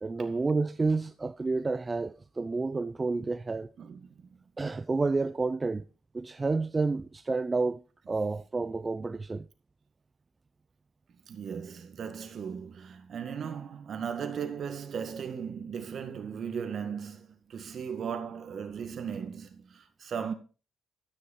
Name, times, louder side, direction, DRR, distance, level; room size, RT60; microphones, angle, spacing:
voice 1, 0.0-3.7 4.6-5.8 6.1-9.5, right 3 dB, 25° right, 0.4 m, -30 dB
voice 2, 3.8-4.4 11.3-20.3, right 7 dB, 55° right, 1.9 m, -37 dB
13.5 x 6.4 x 4.4 m
cardioid pair, 90°, 0 cm